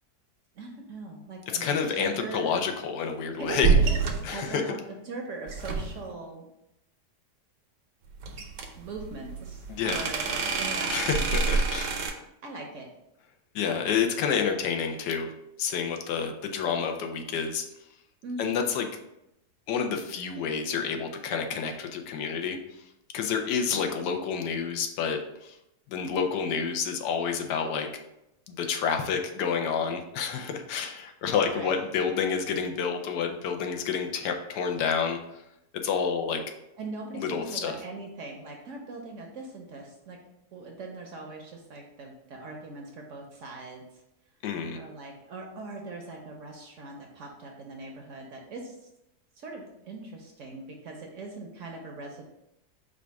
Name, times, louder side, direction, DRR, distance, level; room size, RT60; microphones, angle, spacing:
voice 1, 0.5-2.5 3.4-4.8 5.1-6.5 8.8-9.6 9.9-11.3 12.4-12.9 18.2-18.7 31.5-31.9 36.8-40.2 40.5-43.8 44.7-48.8 49.4-52.3, right 3 dB, 60° right, 1 dB, 0.8 m, -40 dB
voice 2, 1.6-3.7 4.2-4.6 9.7-10.0 10.9-12.0 13.5-15.3 15.6-17.7 18.4-18.9 19.7-22.6 23.1-25.6 25.9-27.9 28.5-35.4 35.8-36.4 37.1-37.8 44.4-44.8, left 6 dB, 90° left, 5 dB, 1.2 m, -29 dB
sound 1, 3.6-4.3 5.5-6.1 8.2-12.1, right 5 dB, 80° right, 1.2 m, -27 dB
4.9 x 2.3 x 4.6 m, 0.85 s
omnidirectional pair, 1.8 m